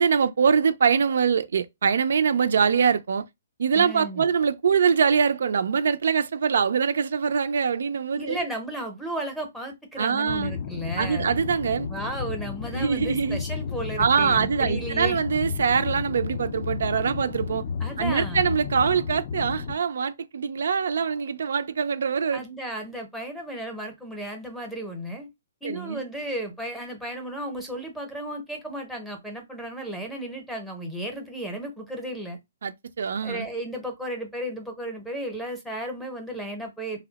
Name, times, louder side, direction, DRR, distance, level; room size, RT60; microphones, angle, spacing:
voice 1, 0.0-3.3 3.6-8.4 10.0-10.5 11.0-11.9 12.7-13.4 14.0-17.6 18.0-22.4 25.6-26.0 32.6-33.5, right 6 dB, 70° right, 0.3 m, -23 dB
voice 2, 3.7-4.2 8.2-11.3 11.9-15.2 17.8-18.5 22.3-25.3 25.6-32.4 33.2-37.0, right 1 dB, ahead, 0.7 m, -34 dB
sound 1, 10.3-19.7, left 6 dB, 35° left, 0.4 m, -32 dB
2.7 x 2.0 x 3.9 m
hypercardioid pair, 165°, 0 cm